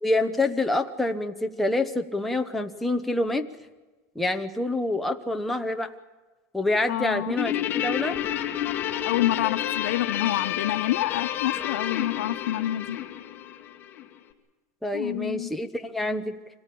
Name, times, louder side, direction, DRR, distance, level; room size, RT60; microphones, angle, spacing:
voice 1, 0.0-3.5 4.1-5.9 6.5-8.2 14.8-16.4, left 2 dB, ahead, 3 dB, 1.0 m, -27 dB
voice 2, 6.9-7.4 9.0-13.0 14.9-15.5, left 13 dB, 85° left, 10 dB, 1.1 m, -27 dB
Guitar, 7.4-14.0, left 11 dB, 25° left, 2.5 m, -30 dB
25.5 x 17.5 x 8.6 m, 1.2 s
supercardioid pair, 165°, 8 cm